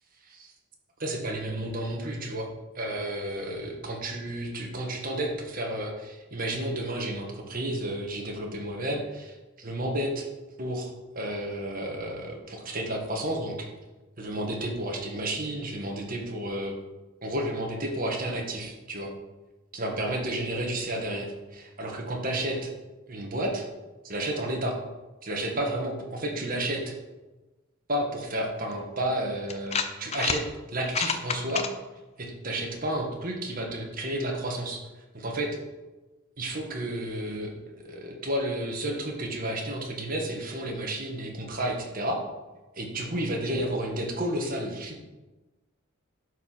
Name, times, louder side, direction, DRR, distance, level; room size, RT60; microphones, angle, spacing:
voice 1, 1.0-2.5 2.8-10.3 10.6-13.7 14.2-16.8 17.2-19.1 19.7-22.7 23.1-23.6 24.0-24.8 25.2-26.9 27.9-31.6 32.2-34.8 35.1-35.6 36.4-42.2 42.8-45.1, right 1 dB, 40° right, 1 dB, 1.7 m, -31 dB
sound 1, 28.7-28.8 29.5-30.4 30.8-31.7, left 6 dB, 30° left, 0.7 m, -29 dB
11.0 x 4.9 x 5.8 m, 1.1 s
head